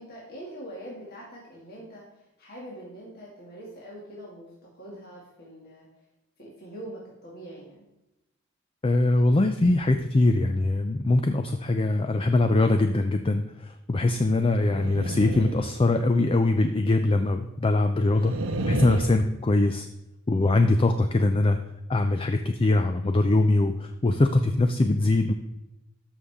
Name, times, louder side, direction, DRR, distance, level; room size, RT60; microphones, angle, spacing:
voice 1, 0.0-4.5 4.8-5.9 6.4-7.9, right 1 dB, 50° left, -5 dB, 2.4 m, -43 dB
voice 2, 8.8-18.3 18.7-19.9 20.3-21.6 21.9-25.3, left 2 dB, 25° left, 7 dB, 0.4 m, -22 dB
sound 1, 14.6-16.4 18.2-19.2, right 1 dB, 75° right, 0.9 m, -30 dB
13.5 x 5.5 x 3.6 m, 0.95 s
head